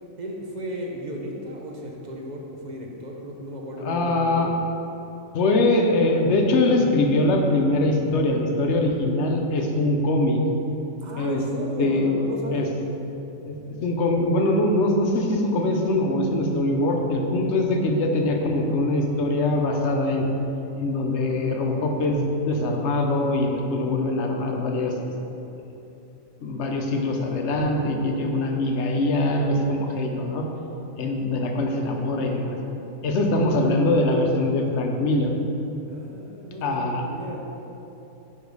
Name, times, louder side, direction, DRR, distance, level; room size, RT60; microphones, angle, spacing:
voice 1, 0.2-4.6 11.0-12.7 35.9-37.4, equal, 40° right, 0 dB, 0.7 m, -34 dB
voice 2, 3.8-4.5 5.3-10.4 11.2-11.4 11.8-12.1 12.5-12.7 13.5-13.6 13.8-20.3 20.8-25.1 26.4-30.5 31.0-32.6 33.0-35.3 36.6-37.0, left 2 dB, 60° left, 2 dB, 0.9 m, -23 dB
5.4 x 4.9 x 5.2 m, 2.9 s
omnidirectional pair, 1.4 m